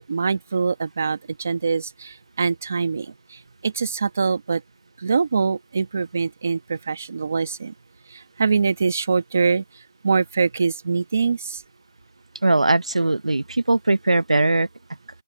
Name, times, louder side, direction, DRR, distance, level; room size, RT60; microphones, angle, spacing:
voice 1, 0.0-4.6 5.0-7.7 8.1-9.6 10.0-11.6, right 5 dB, 20° right, 1.2 m, -24 dB
voice 2, 12.4-14.7, right 2 dB, 85° right, 0.9 m, -20 dB
open air
figure-of-eight pair, 180°, 3 cm